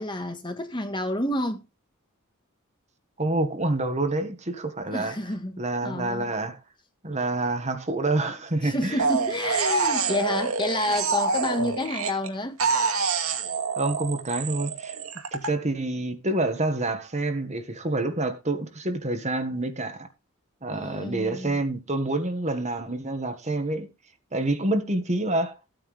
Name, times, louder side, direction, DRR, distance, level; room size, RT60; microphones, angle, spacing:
voice 1, 0.0-1.6 4.8-6.3 8.6-12.6 20.7-21.6, left 1 dB, 20° left, 1.7 m, -29 dB
voice 2, 3.2-5.1 5.6-6.6 7.0-9.0 13.8-14.9 15.3-20.1 20.6-23.9 24.3-25.6, right 2 dB, 30° right, 1.7 m, -27 dB
sound 1, 9.0-12.3 12.6-15.5, right 4 dB, 80° right, 2.3 m, -26 dB
15.0 x 9.2 x 3.4 m
head